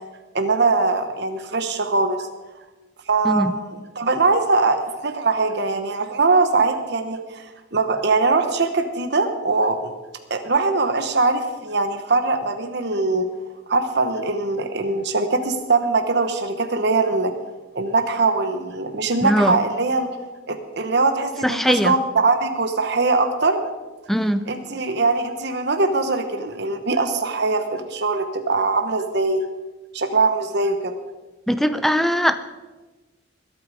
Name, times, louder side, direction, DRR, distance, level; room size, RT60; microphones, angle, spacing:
voice 1, 0.3-2.3 3.1-9.9 10.3-13.3 13.7-17.3 17.7-20.1 20.5-23.6 24.5-29.5 29.9-31.0, right 3 dB, 55° right, 7 dB, 1.1 m, -21 dB
voice 2, 19.2-19.6 21.4-21.9 24.1-24.4 31.5-32.4, equal, ahead, 11 dB, 0.5 m, -20 dB
21.5 x 8.6 x 4.9 m, 1.2 s
head